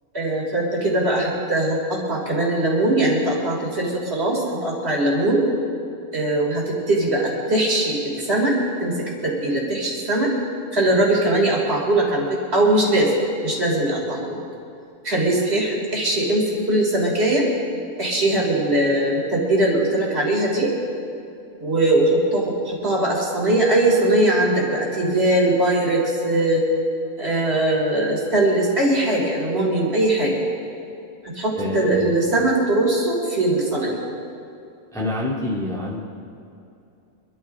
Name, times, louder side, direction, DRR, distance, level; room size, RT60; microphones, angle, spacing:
voice 1, 0.1-5.5 6.1-10.3 10.7-13.1 13.4-14.4 15.0-17.5 18.0-20.7 21.6-26.6 27.2-30.4 31.2-34.0, right 1 dB, 45° right, -3 dB, 3.9 m, -21 dB
voice 2, 31.6-32.1 34.9-36.0, left 1 dB, ahead, -5 dB, 2.2 m, -26 dB
25.5 x 13.5 x 3.7 m, 2.7 s
omnidirectional pair, 1.5 m